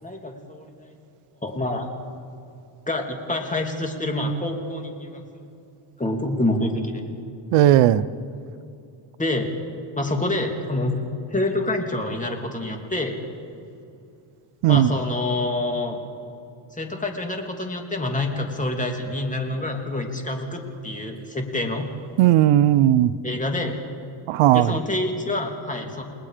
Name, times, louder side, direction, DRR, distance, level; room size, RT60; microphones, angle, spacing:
voice 1, 0.0-0.7 1.4-1.9 2.9-5.2 6.0-7.0 9.2-9.5 10.0-11.0 11.3-13.2 14.7-16.0 16.8-21.9 23.2-23.8 24.5-26.0, left 2 dB, 15° left, 3 dB, 3.0 m, -27 dB
voice 2, 7.5-8.0 14.6-14.9 22.2-23.1 24.3-24.8, right 12 dB, 90° right, 16 dB, 0.7 m, -16 dB
30.0 x 20.0 x 5.1 m, 2.6 s
cardioid pair, 110°, 50 cm